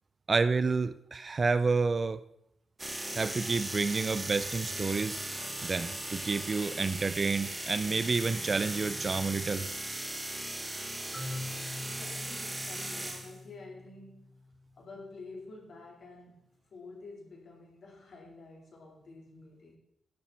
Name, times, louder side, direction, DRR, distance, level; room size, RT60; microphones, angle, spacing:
voice 1, 0.3-2.2 2.9-5.2 5.6-9.7, right 4 dB, 30° right, 14 dB, 0.4 m, -29 dB
sound 1, 2.8-13.3, right 1 dB, 10° right, 1.5 m, -38 dB
Marimba xylophone, 11.1-15.0, left 2 dB, 5° left, 4.0 m, -44 dB
voice 2, 11.9-14.4 14.8-19.8, left 3 dB, 50° left, -2 dB, 4.0 m, -49 dB
11.5 x 11.5 x 4.3 m, 0.79 s
wide cardioid pair, 175°, 0 cm